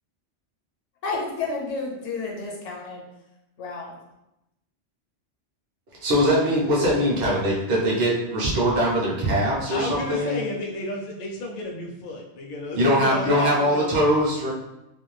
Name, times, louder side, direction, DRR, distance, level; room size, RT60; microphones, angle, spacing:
voice 1, 1.0-3.0 3.6-4.0, left 3 dB, 80° left, 0 dB, 1.0 m, -31 dB
voice 2, 6.0-10.4 12.8-14.5, equal, 50° right, -5 dB, 0.7 m, -22 dB
voice 3, 9.7-14.1, left 2 dB, 60° left, -1 dB, 0.6 m, -32 dB
2.5 x 2.2 x 3.1 m, 0.90 s
omnidirectional pair, 1.2 m